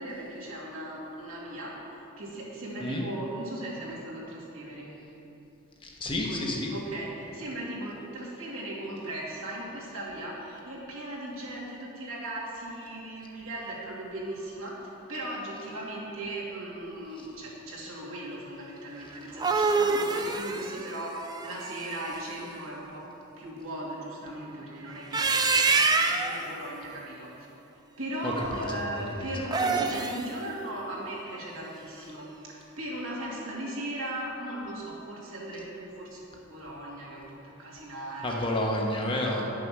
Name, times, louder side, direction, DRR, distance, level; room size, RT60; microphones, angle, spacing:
voice 1, 0.0-1.7 2.2-4.9 6.2-14.8 15.1-23.0 23.4-25.4 25.8-27.3 28.0-36.2 36.5-38.6 39.3-39.4, right 1 dB, 75° right, -5 dB, 2.5 m, -37 dB
voice 2, 5.8-6.7 28.2-29.3 38.2-39.4, left 1 dB, 25° left, -1 dB, 1.0 m, -30 dB
sound 1, 19.1-22.2 24.9-26.4 29.4-30.3, right 4 dB, 20° right, 0.4 m, -26 dB
10.0 x 6.5 x 6.1 m, 2.9 s
head